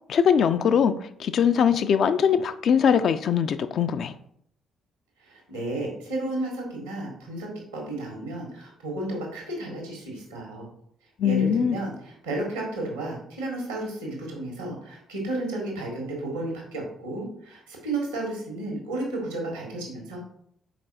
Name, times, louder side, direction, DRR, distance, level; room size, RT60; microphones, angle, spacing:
voice 1, 0.1-4.1 11.2-11.7, left 7 dB, 50° left, 11 dB, 0.4 m, -21 dB
voice 2, 5.2-10.7 11.2-20.2, right 2 dB, 80° right, 0 dB, 1.7 m, -33 dB
5.8 x 4.6 x 4.1 m, 0.69 s
figure-of-eight pair, 45°, 0 cm